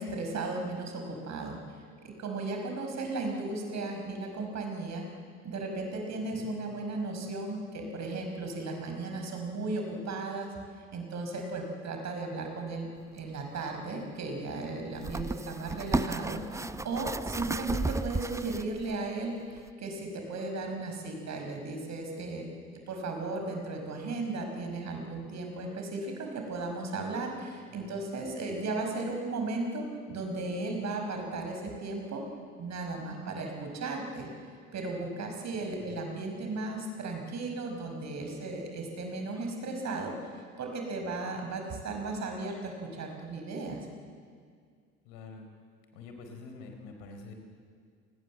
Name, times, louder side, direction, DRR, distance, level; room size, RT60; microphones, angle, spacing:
voice 1, 0.0-5.1 5.4-10.5 10.9-12.9 13.1-22.4 22.7-32.2 32.6-34.3 34.7-40.1 40.6-43.8, right 3 dB, 40° right, 3 dB, 5.8 m, -35 dB
sound 1, 13.2-13.3 14.9-19.0 19.6-19.7, right 2 dB, 5° right, 0.8 m, -33 dB
voice 2, 27.7-28.0 35.8-36.0 45.0-45.5 45.9-47.3, left 4 dB, 55° left, 4 dB, 4.4 m, -47 dB
29.5 x 20.0 x 7.7 m, 2.1 s
figure-of-eight pair, 65°, 42 cm